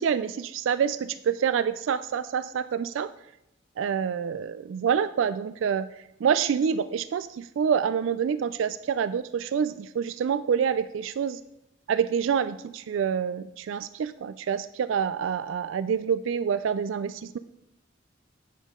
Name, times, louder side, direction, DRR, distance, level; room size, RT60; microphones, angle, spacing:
voice 1, 0.0-3.1 3.8-5.9 6.2-11.4 11.9-17.4, right 7 dB, 80° right, 14 dB, 0.3 m, -27 dB
8.4 x 7.2 x 3.7 m, 0.85 s
head